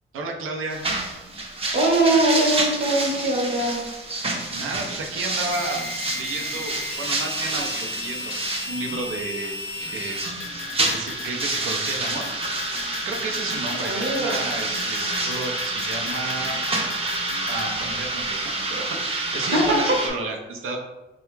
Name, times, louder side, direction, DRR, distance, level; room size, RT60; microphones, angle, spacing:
voice 1, 0.1-0.8 4.5-9.6 9.9-10.2 10.9-12.3 13.0-16.6 17.5-20.8, right 3 dB, 85° right, 3 dB, 0.6 m, -32 dB
sound 1, 0.7-20.1, right 2 dB, 30° right, 0.6 m, -28 dB
voice 2, 1.7-3.9 13.8-14.4 19.5-20.1, right 1 dB, 55° right, -1 dB, 0.9 m, -22 dB
sound 2, 5.5-17.6, left 4 dB, 85° left, 0.4 m, -36 dB
3.3 x 2.3 x 3.1 m, 1.1 s
cardioid pair, 100°, 21 cm